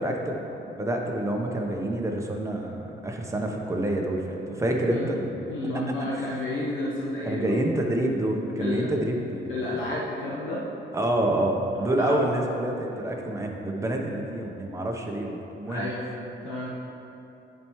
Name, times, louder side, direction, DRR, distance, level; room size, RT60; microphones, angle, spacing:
voice 1, 0.0-5.3 7.2-9.5 10.9-15.9, right 1 dB, 15° right, 1 dB, 0.9 m, -27 dB
voice 2, 5.4-7.6 8.6-8.9 9.5-10.7 11.7-12.2 15.7-16.7, left 2 dB, 85° left, -5 dB, 1.0 m, -31 dB
10.0 x 4.4 x 3.1 m, 3.0 s
cardioid pair, 90°, 20 cm